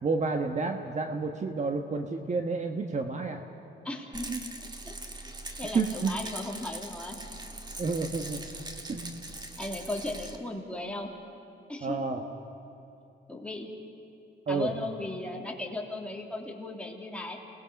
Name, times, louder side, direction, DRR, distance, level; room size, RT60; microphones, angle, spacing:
voice 1, 0.0-3.5 4.3-4.4 5.7-6.1 7.8-8.4 8.9-9.2 11.8-12.2 14.5-14.7, right 4 dB, 35° right, 4 dB, 1.4 m, -30 dB
voice 2, 3.8-4.3 4.8-4.9 5.6-7.2 9.6-11.1 11.7-12.0 13.3-13.7 14.5-17.4, left 2 dB, 5° left, -1 dB, 3.1 m, -36 dB
Rattle, 4.1-10.4, right 2 dB, 20° right, 1.8 m, -41 dB
28.0 x 19.5 x 5.3 m, 2.9 s
cardioid pair, 90°, 20 cm